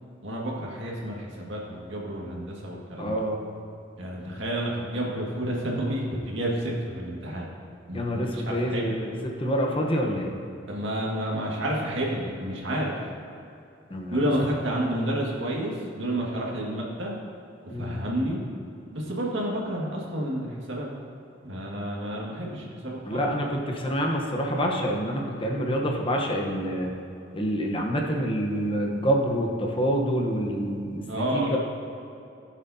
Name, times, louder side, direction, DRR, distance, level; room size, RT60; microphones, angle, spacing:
voice 1, 0.2-3.2 4.0-7.4 7.9-9.0 10.7-12.9 14.1-17.1 17.7-18.4 18.9-20.9 21.4-23.2 31.1-31.6, right 1 dB, 75° right, -3 dB, 1.9 m, -30 dB
voice 2, 3.0-3.4 7.9-10.3 13.9-14.2 17.7-18.0 23.1-26.9 27.3-31.1 31.3-31.6, equal, 30° left, 0 dB, 1.0 m, -27 dB
15.5 x 7.3 x 2.8 m, 2.6 s
head